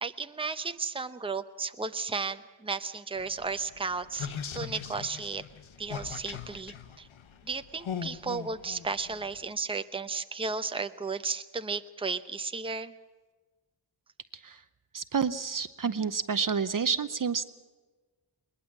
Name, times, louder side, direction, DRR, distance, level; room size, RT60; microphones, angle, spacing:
voice 1, 0.0-5.4 5.8-7.1 7.4-12.9, right 4 dB, 10° right, 9 dB, 0.8 m, -34 dB
sound 1, 3.2-9.5, left 7 dB, 90° left, 1.2 m, -41 dB
voice 2, 14.9-17.4, right 6 dB, 45° right, 13 dB, 0.8 m, -29 dB
21.0 x 20.5 x 7.3 m, 1.3 s
wide cardioid pair, 85°, 46 cm